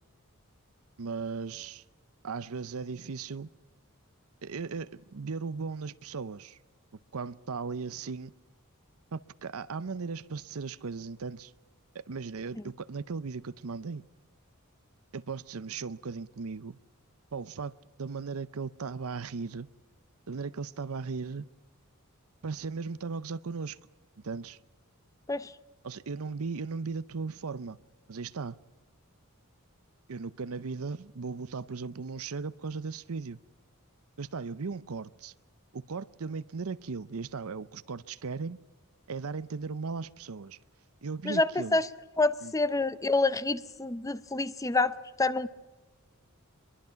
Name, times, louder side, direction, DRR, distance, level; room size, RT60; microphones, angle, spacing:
voice 1, 1.0-1.8 2.2-3.5 4.4-6.6 7.1-8.3 9.1-11.5 12.1-14.0 15.1-16.8 17.3-19.7 20.3-21.4 22.4-23.8 24.2-24.6 25.8-27.8 28.1-28.6 30.1-33.4 34.2-35.3 35.7-38.6 39.1-40.6 41.0-41.8 42.4-42.5, right 4 dB, 75° right, 0.7 m, -37 dB
voice 2, 41.2-41.9 42.2-45.5, left 3 dB, 15° left, 0.6 m, -27 dB
23.0 x 23.0 x 5.7 m
head